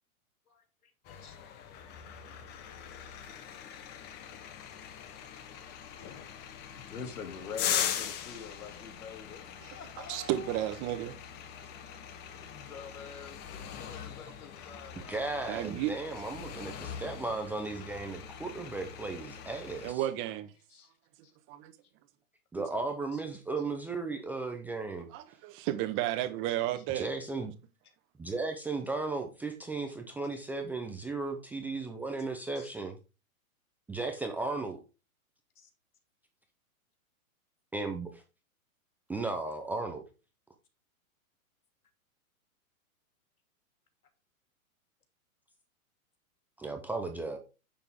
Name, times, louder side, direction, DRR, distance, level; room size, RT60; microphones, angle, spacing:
voice 1, 0.5-0.9 1.2-1.4 3.5-3.6 6.0-6.1 6.7-9.5 9.7-10.7 12.4-15.4 20.7-20.9 21.2-21.3 23.1-23.2 26.5-26.8 32.6-32.7 35.6-35.7, left 6 dB, 90° left, 2.7 m, -46 dB
sound 1, 1.0-19.9, left 9 dB, 25° left, 1.0 m, -41 dB
voice 2, 10.1-11.2 15.5-15.9 19.8-20.5 21.5-21.7 25.1-27.1, right 13 dB, 30° right, 1.3 m, -32 dB
voice 3, 15.1-20.1 22.5-25.1 26.9-27.5 28.2-33.0 33.9-34.8 37.7-38.2 39.1-40.0 46.6-47.4, right 3 dB, 5° right, 0.6 m, -35 dB
9.8 x 7.0 x 3.6 m
hypercardioid pair, 150°, 43 cm